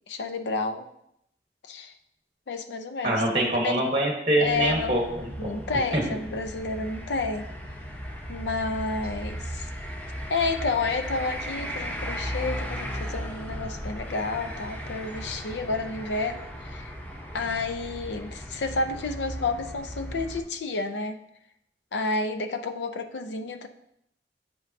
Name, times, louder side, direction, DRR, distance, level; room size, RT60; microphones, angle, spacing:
voice 1, 0.1-0.9 1.7-1.9 2.5-3.2 3.6-3.8 4.4-5.0 5.4-7.5 8.3-9.7 10.3-16.9 17.3-21.2 21.9-23.7, left 3 dB, 85° left, 8 dB, 0.5 m, -30 dB
voice 2, 3.0-5.5 5.9-6.0, right 1 dB, 30° right, 0 dB, 1.4 m, -24 dB
sound 1, 4.4-20.4, equal, 10° left, 0.6 m, -36 dB
7.8 x 5.1 x 2.8 m, 0.77 s
head